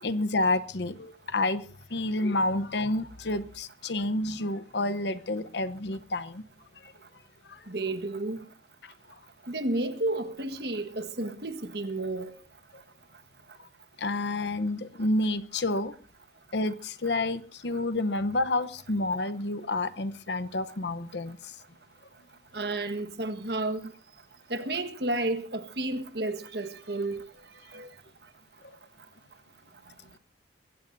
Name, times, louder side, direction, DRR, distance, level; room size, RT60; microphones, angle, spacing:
voice 1, 0.0-6.4 6.8-6.9 7.5-7.6 8.8-8.9 14.0-15.9 16.5-21.6, left 2 dB, 65° left, 0.9 m, -29 dB
voice 2, 7.7-8.4 9.5-12.3 22.5-23.9 24.5-27.2 27.7-27.9, right 2 dB, 55° right, 1.4 m, -31 dB
23.0 x 16.0 x 2.7 m
head